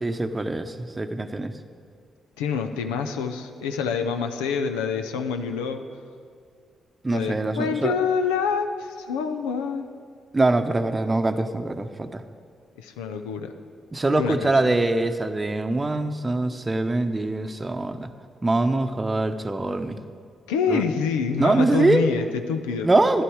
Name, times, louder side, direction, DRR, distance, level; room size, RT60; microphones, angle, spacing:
voice 1, 0.0-1.5 7.0-7.9 10.3-12.2 13.9-18.1 18.4-20.0 20.7-20.8 21.4-22.1 22.8-23.2, right 2 dB, 30° right, 9 dB, 0.8 m, -23 dB
voice 2, 2.4-5.9 7.1-9.9 12.8-13.5 14.2-14.8 20.5-22.9, left 6 dB, 85° left, 7 dB, 0.5 m, -27 dB
11.5 x 11.0 x 4.7 m, 2.2 s
hypercardioid pair, 45°, 0 cm